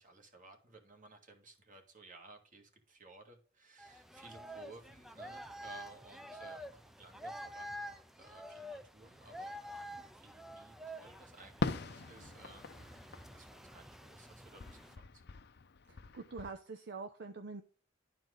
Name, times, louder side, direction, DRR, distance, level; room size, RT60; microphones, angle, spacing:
voice 1, 0.0-15.4, right 2 dB, 45° right, 4 dB, 1.9 m, -58 dB
sound 1, 3.8-15.0, equal, ahead, 0.5 m, -49 dB
Fireworks, 11.6-14.2 14.6-16.5, left 3 dB, 60° left, 0.6 m, -42 dB
voice 2, 15.9-17.6, right 4 dB, 60° right, 6 dB, 0.7 m, -45 dB
11.5 x 4.6 x 3.8 m, 0.41 s
head